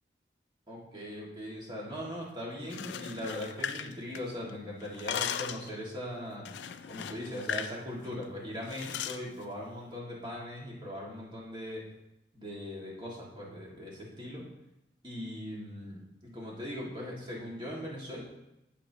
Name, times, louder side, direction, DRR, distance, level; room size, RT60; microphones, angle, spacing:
voice 1, 0.7-6.5 6.9-11.8 12.3-14.5 15.0-18.2, left 1 dB, 25° right, -4 dB, 2.0 m, -40 dB
sound 1, 2.6-4.5 4.8-5.7 6.5-7.8 8.0-8.2 8.7-9.2, left 8 dB, 90° left, 0.4 m, -37 dB
15.0 x 5.2 x 2.9 m, 0.92 s
head